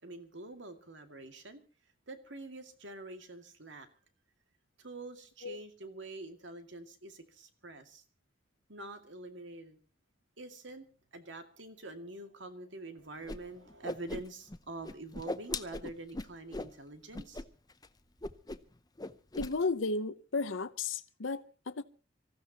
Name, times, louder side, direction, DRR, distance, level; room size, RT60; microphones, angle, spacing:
voice 1, 0.0-1.6 2.1-3.9 4.8-8.0 8.7-9.8 10.4-10.9 11.1-17.4, right 2 dB, 70° right, 2.2 m, -46 dB
Whoosh swoosh swish, 13.3-13.4 13.7-14.6 14.8-16.7 17.1-17.4 17.7-17.9 18.2-18.7 19.0-19.5, left 2 dB, 20° left, 0.7 m, -39 dB
voice 2, 19.4-21.8, left 3 dB, 85° left, 0.8 m, -34 dB
25.5 x 15.0 x 2.9 m
head